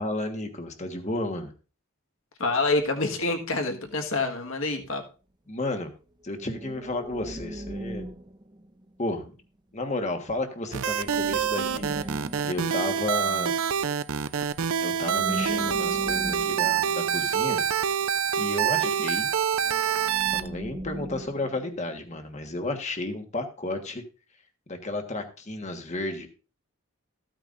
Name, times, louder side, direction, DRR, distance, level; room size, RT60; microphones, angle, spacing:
voice 1, 0.0-1.5 5.5-5.9 6.2-8.1 9.0-9.2 9.7-12.2 12.5-13.5 14.8-17.6 18.4-19.3 20.3-24.0 24.7-26.3, left 2 dB, 30° left, 6 dB, 1.4 m, -32 dB
voice 2, 2.4-5.0, left 3 dB, 65° left, 4 dB, 1.6 m, -27 dB
sound 1, 2.9-4.2 6.3-9.3 10.9-13.9 14.5-14.8 15.0-18.0 19.6-22.2 22.5-22.7, right 1 dB, 20° right, 0.7 m, -39 dB
sound 2, 10.7-20.5, right 8 dB, 75° right, 0.6 m, -26 dB
15.0 x 9.0 x 2.6 m, 0.35 s
head